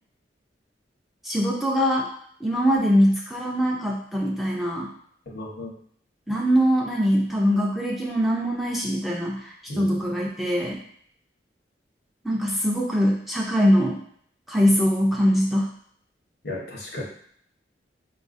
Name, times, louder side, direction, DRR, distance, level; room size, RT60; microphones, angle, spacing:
voice 1, 1.2-2.1 2.4-4.9 6.3-10.8 12.2-14.0 14.5-15.7, equal, ahead, -4 dB, 0.4 m, -22 dB
voice 2, 5.3-5.7 9.7-9.9 16.4-17.0, left 1 dB, 65° left, -1 dB, 0.9 m, -34 dB
4.6 x 2.4 x 2.5 m, 0.62 s
head